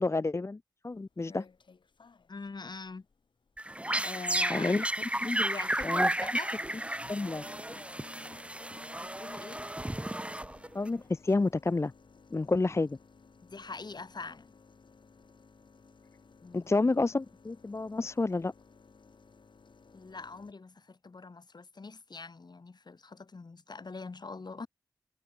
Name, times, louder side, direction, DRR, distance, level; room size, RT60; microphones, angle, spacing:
voice 1, 0.0-1.4 4.5-4.8 5.2-5.4 5.8-6.1 7.1-7.4 10.7-11.9 12.3-13.0 16.5-18.5, left 3 dB, 35° left, 0.5 m, -29 dB
sound 1, 0.9-20.5, left 4 dB, 85° left, 5.2 m, -57 dB
voice 2, 2.3-3.1 4.0-4.9 5.4-6.5 9.0-9.7 13.5-14.5 16.4-16.7 19.9-24.7, left 4 dB, 60° left, 1.9 m, -43 dB
sound 2, 3.6-10.9, right 1 dB, 15° right, 1.1 m, -33 dB
wide cardioid pair, 50°, 8 cm